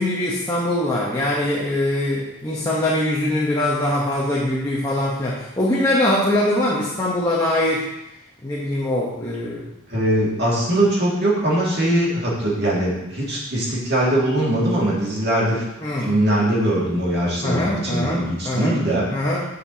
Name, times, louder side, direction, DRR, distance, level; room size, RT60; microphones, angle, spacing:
voice 1, 0.0-7.8 8.4-9.6 15.8-16.1 17.4-18.8 19.1-19.4, left 1 dB, 15° left, -5 dB, 0.9 m, -22 dB
voice 2, 9.9-15.6 16.0-19.1, right 1 dB, 50° right, -5 dB, 2.1 m, -21 dB
8.6 x 6.7 x 2.8 m, 0.92 s
head